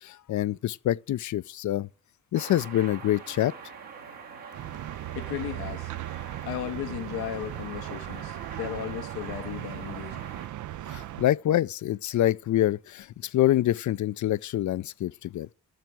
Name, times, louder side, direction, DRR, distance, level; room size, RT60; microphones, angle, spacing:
voice 1, 0.0-1.9 2.3-3.5 10.9-13.1 13.3-15.5, left 13 dB, 50° left, 0.5 m, -26 dB
sound 1, 2.3-10.5, right 6 dB, 70° right, 1.9 m, -44 dB
sound 2, 4.5-11.3, right 14 dB, 55° right, 0.5 m, -38 dB
voice 2, 5.1-5.9 6.4-10.3, left 11 dB, 80° left, 1.0 m, -35 dB
7.6 x 6.8 x 7.7 m
supercardioid pair, 55°, 37 cm